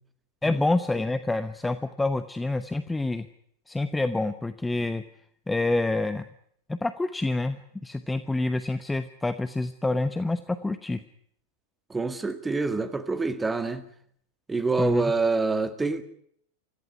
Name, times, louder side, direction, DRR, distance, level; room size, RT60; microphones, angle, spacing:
voice 1, 0.4-3.3 3.7-5.0 5.5-6.3 6.7-11.0 14.8-15.0, left 2 dB, 5° left, 1.0 m, -27 dB
voice 2, 11.9-13.9 14.5-16.0, right 3 dB, 10° right, 2.0 m, -26 dB
25.5 x 15.0 x 9.7 m
figure-of-eight pair, 90°, 0 cm